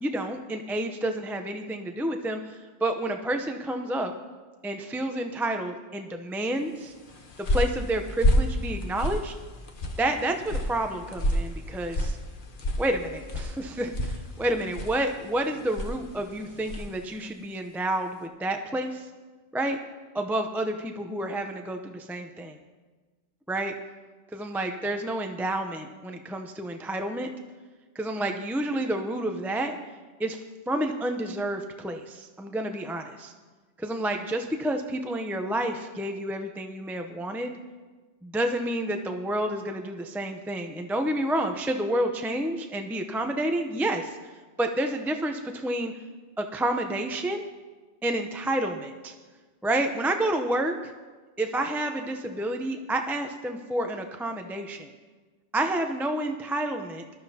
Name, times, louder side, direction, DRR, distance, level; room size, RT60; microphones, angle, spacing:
voice 1, 0.0-4.2 4.6-6.9 7.4-9.3 10.0-12.2 12.8-19.1 19.5-19.8 20.1-22.6 23.5-23.7 24.3-27.3 27.9-29.8 30.2-30.4 30.7-33.3 33.8-37.5 38.2-44.2 44.6-45.9 46.4-47.4 48.0-49.1 49.6-50.9 51.4-54.9 55.5-57.0, right 1 dB, ahead, 4 dB, 0.5 m, -29 dB
sound 1, 6.9-17.0, equal, 50° left, 1.2 m, -30 dB
20.5 x 12.5 x 2.8 m, 1.3 s
omnidirectional pair, 1.2 m